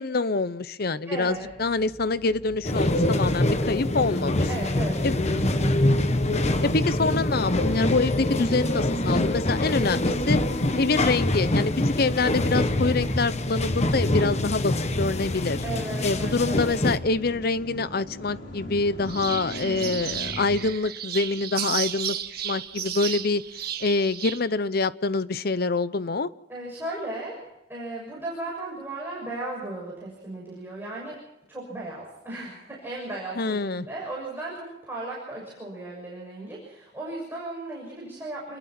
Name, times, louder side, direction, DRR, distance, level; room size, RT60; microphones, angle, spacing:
voice 1, 0.0-4.5 5.0-5.1 6.6-10.4 10.8-15.6 16.0-22.2 22.4-23.4 23.8-26.3 33.4-33.9, left 3 dB, 55° left, 16 dB, 0.8 m, -26 dB
voice 2, 1.0-1.5 4.5-5.8 15.6-16.9 19.6-19.9 26.5-31.2 31.5-38.6, right 2 dB, 10° right, -4 dB, 6.7 m, -36 dB
sound 1, 1.3-20.7, equal, 85° left, 4.2 m, -39 dB
sound 2, 2.6-17.0, left 1 dB, 40° left, 1.2 m, -25 dB
sound 3, 19.1-24.4, right 10 dB, 55° right, 1.6 m, -33 dB
28.0 x 21.5 x 4.4 m, 0.88 s
head